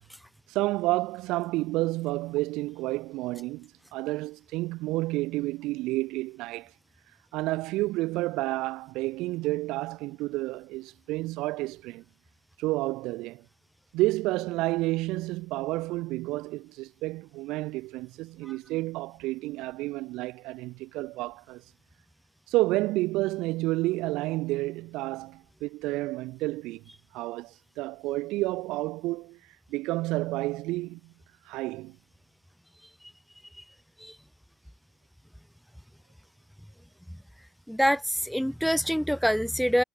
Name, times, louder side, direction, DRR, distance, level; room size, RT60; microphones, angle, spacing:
voice 1, 0.5-6.7 7.3-12.0 12.6-13.4 13.9-21.6 22.5-26.8 27.1-29.4 29.7-31.1 31.5-32.0, right 19 dB, 75° right, 3.6 m, -30 dB
voice 2, 37.7-39.8, equal, ahead, 1.8 m, -25 dB
hypercardioid pair, 70°, 0 cm